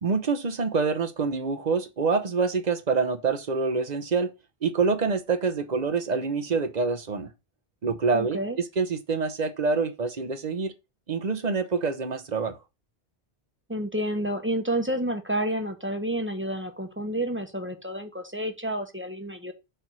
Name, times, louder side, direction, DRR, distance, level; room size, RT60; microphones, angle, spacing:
voice 1, 0.0-4.3 4.6-7.3 7.8-8.4 8.8-10.7 11.1-12.6, right 4 dB, 45° right, 1.0 m, -26 dB
voice 2, 8.1-8.6 13.7-19.5, right 1 dB, 10° right, 1.1 m, -30 dB
6.7 x 3.6 x 6.1 m
omnidirectional pair, 1.0 m